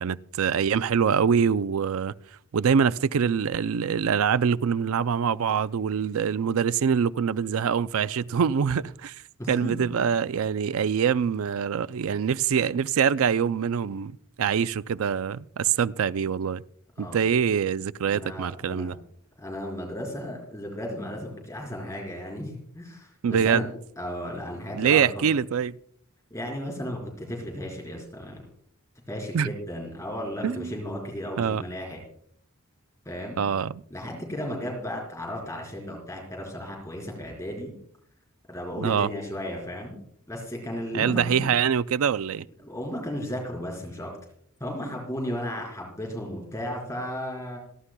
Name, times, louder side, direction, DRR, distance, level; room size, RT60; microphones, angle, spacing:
voice 1, 0.0-2.1 2.5-9.2 9.5-16.6 17.0-19.0 23.2-23.7 24.7-25.8 29.3-29.5 30.4-30.7 31.4-31.6 33.4-33.8 38.8-39.1 40.9-42.5, right 7 dB, 70° right, 0.4 m, -24 dB
voice 2, 9.4-10.0 17.0-17.2 18.1-19.0 19.4-23.7 24.0-25.1 26.3-28.4 29.1-32.0 33.0-33.4 33.9-37.7 38.5-40.0 40.3-41.5 42.6-44.1 44.6-47.6, equal, 15° left, 4.3 m, -34 dB
27.5 x 11.0 x 2.2 m
head